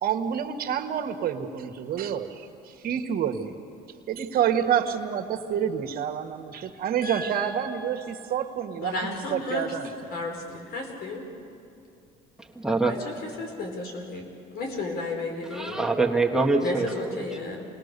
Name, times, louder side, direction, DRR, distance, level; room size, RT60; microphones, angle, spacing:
voice 1, 0.0-3.5 4.1-9.9, right 8 dB, 60° right, 6 dB, 1.5 m, -28 dB
voice 2, 7.0-8.2 8.8-9.8 10.1-11.3 12.8-15.8 16.6-17.7, left 2 dB, 65° left, 2 dB, 4.5 m, -34 dB
voice 3, 12.4-12.9 15.5-17.2, right 3 dB, 5° right, 0 dB, 1.6 m, -25 dB
28.0 x 20.0 x 6.8 m, 2.6 s
cardioid pair, 110°, 17 cm